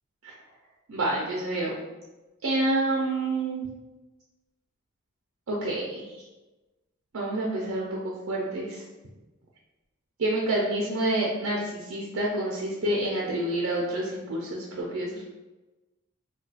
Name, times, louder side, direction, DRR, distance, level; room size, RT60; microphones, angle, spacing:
voice 1, 0.9-1.7 2.4-3.7 5.5-6.2 7.1-8.8 10.2-15.2, right 1 dB, 85° right, -3 dB, 0.5 m, -28 dB
2.3 x 2.2 x 3.9 m, 1.1 s
head